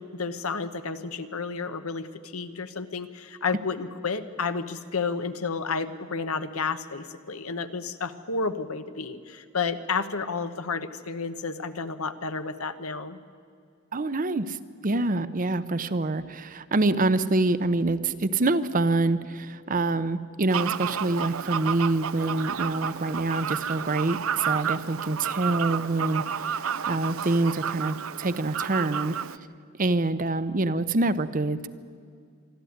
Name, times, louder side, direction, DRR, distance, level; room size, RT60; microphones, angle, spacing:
voice 1, 0.0-13.2, left 4 dB, 85° left, 10 dB, 1.1 m, -31 dB
voice 2, 13.9-14.6 14.8-29.1 29.8-31.7, right 2 dB, 40° right, 13 dB, 0.7 m, -26 dB
Fowl, 20.5-29.4, right 7 dB, 75° right, 0.6 m, -31 dB
25.0 x 12.5 x 9.5 m, 2.2 s
head